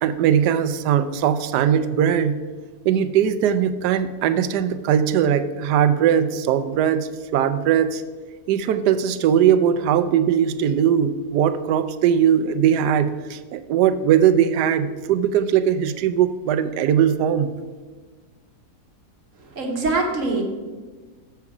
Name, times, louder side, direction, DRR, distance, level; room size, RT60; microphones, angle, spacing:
voice 1, 0.0-2.4 2.8-8.0 8.5-17.5, right 9 dB, 80° right, 11 dB, 1.1 m, -20 dB
voice 2, 19.4-20.4, right 3 dB, 55° right, 2 dB, 1.3 m, -24 dB
7.1 x 6.8 x 4.8 m, 1.3 s
omnidirectional pair, 1.7 m